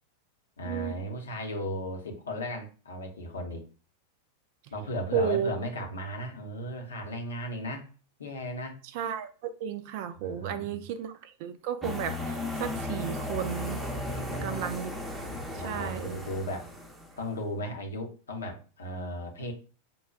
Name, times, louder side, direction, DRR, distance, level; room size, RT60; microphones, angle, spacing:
voice 1, 0.6-3.6 4.7-7.9 8.2-8.8 10.1-10.9 14.1-14.6 15.1-16.7 17.2-19.5, equal, 70° left, 0.7 m, -36 dB
voice 2, 5.1-5.5 8.9-13.8 14.4-14.9 15.6-16.2, right 8 dB, 45° right, 0.4 m, -33 dB
sound 1, 11.8-17.3, left 1 dB, 10° right, 0.7 m, -36 dB
5.3 x 2.2 x 2.3 m
figure-of-eight pair, 90°, 0 cm